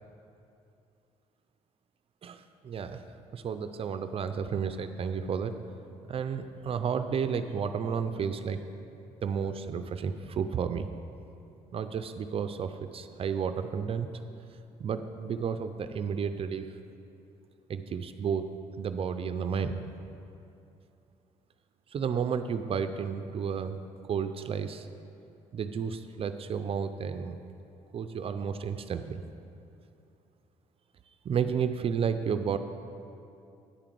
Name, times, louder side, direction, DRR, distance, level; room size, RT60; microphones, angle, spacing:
voice 1, 2.2-3.0 3.3-5.5 6.1-8.6 9.2-10.9 11.7-14.1 14.8-16.7 17.7-18.4 18.8-19.8 21.9-24.9 25.5-27.4 27.9-29.2 31.2-32.6, right 7 dB, 45° right, 9 dB, 0.5 m, -32 dB
10.0 x 5.0 x 7.6 m, 2.7 s
cardioid pair, 90°, 13 cm